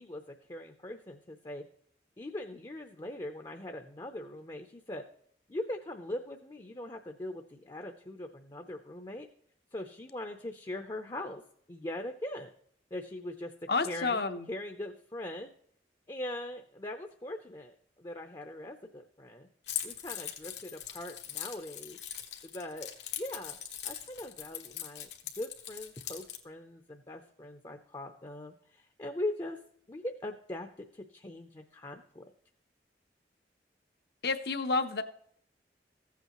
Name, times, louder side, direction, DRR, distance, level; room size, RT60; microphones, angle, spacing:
voice 1, 0.0-1.7 2.2-5.1 5.5-9.3 9.7-11.4 11.7-12.5 12.9-13.5 13.8-14.2 14.5-15.5 16.1-19.5 19.8-22.0 22.4-23.6 23.8-25.1 25.4-29.6 29.9-30.7 30.9-32.3, left 1 dB, 25° left, 5 dB, 0.6 m, -41 dB
voice 2, 13.7-14.5 34.2-35.0, left 4 dB, 65° left, 9 dB, 0.8 m, -30 dB
Keys jangling, 19.7-26.4, left 10 dB, 85° left, 1.4 m, -41 dB
15.0 x 8.2 x 3.0 m, 0.65 s
head